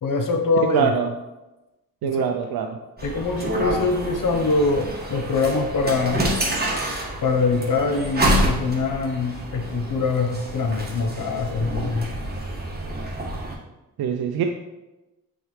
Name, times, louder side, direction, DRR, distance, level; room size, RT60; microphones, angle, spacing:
voice 1, 0.0-1.0 2.0-2.3 3.0-6.3 7.2-12.1, left 4 dB, 55° left, 5 dB, 1.0 m, -23 dB
voice 2, 0.7-1.1 2.0-2.8 14.0-14.4, right 8 dB, 75° right, 4 dB, 0.5 m, -23 dB
sound 1, 3.0-13.5, right 1 dB, 25° right, 1.6 m, -28 dB
6.2 x 4.7 x 3.2 m, 1.0 s
cardioid pair, 60°, 37 cm